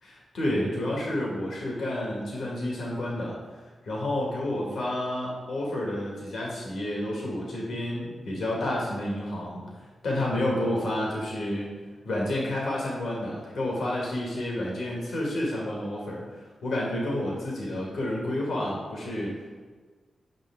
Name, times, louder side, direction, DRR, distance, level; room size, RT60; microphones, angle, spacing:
voice 1, 0.0-11.7 12.0-19.6, left 1 dB, 80° left, -3 dB, 1.9 m, -30 dB
8.9 x 5.7 x 3.6 m, 1.4 s
cardioid pair, 60°, 0 cm